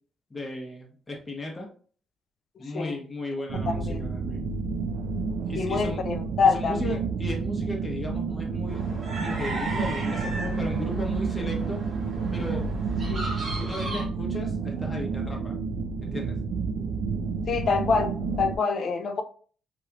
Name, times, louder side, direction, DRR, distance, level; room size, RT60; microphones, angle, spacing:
voice 1, 0.3-1.7 2.6-4.5 5.5-6.0 6.4-8.8 9.2-11.8 12.3-12.7 13.6-15.6 16.0-16.3 17.4-17.5, left 1 dB, 25° left, 1.1 m, -35 dB
voice 2, 3.5-4.0 5.6-7.0 13.1-13.3 17.5-19.2, left 5 dB, 55° left, 0.4 m, -26 dB
sound 1, 3.5-18.6, right 4 dB, 75° right, 0.4 m, -30 dB
sound 2, 8.7-14.0, right 1 dB, 40° right, 1.4 m, -36 dB
3.1 x 2.9 x 2.4 m
cardioid pair, 90°, 0 cm